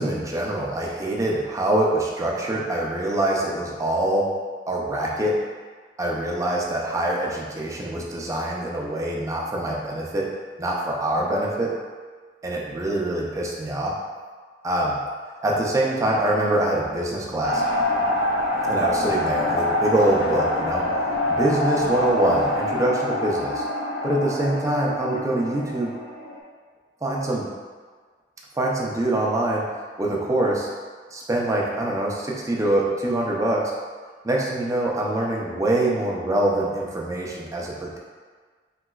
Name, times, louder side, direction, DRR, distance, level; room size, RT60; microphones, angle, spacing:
voice 1, 0.0-4.3 4.7-5.4 6.0-10.3 10.6-11.7 12.4-13.9 14.6-15.0 15.4-17.6 18.7-20.9 21.3-23.6 24.0-25.9 27.0-27.5 28.6-29.7 30.0-30.7 31.1-33.7 34.2-38.0, right 1 dB, 20° right, -2 dB, 0.4 m, -24 dB
sound 1, 17.4-26.4, left 1 dB, 65° left, 0.5 m, -25 dB
3.2 x 3.0 x 2.3 m, 1.5 s
head